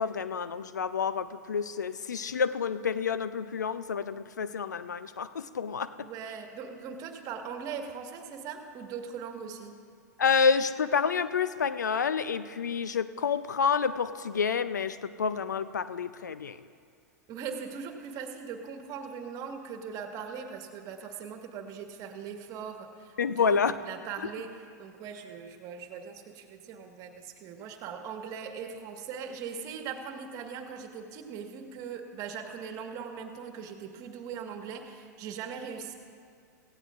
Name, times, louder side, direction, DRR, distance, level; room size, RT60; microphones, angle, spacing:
voice 1, 0.0-6.1 10.2-16.6 23.2-23.8 24.2-24.3, left 6 dB, 85° left, 14 dB, 0.5 m, -29 dB
voice 2, 6.0-9.7 17.3-24.5 24.8-35.9, right 6 dB, 40° right, 4 dB, 1.5 m, -40 dB
17.5 x 16.0 x 2.5 m, 2.2 s
hypercardioid pair, 100°, 9 cm